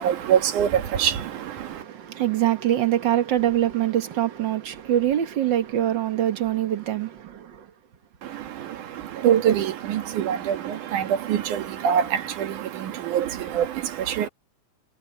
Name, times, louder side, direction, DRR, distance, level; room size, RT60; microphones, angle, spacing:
voice 1, 0.0-1.8 8.2-14.3, right 9 dB, 75° right, 3.2 m, -25 dB
voice 2, 1.6-7.6, right 12 dB, 55° right, 1.3 m, -24 dB
omnidirectional pair, 3.6 m